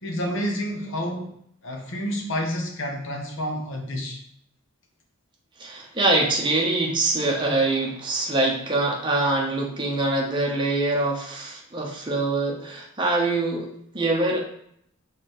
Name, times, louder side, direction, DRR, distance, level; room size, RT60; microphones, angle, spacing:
voice 1, 0.0-1.3 1.6-4.2, equal, 60° left, 1 dB, 0.9 m, -29 dB
voice 2, 5.6-14.4, right 2 dB, 20° right, -1 dB, 0.7 m, -24 dB
4.8 x 3.3 x 3.0 m, 0.69 s
head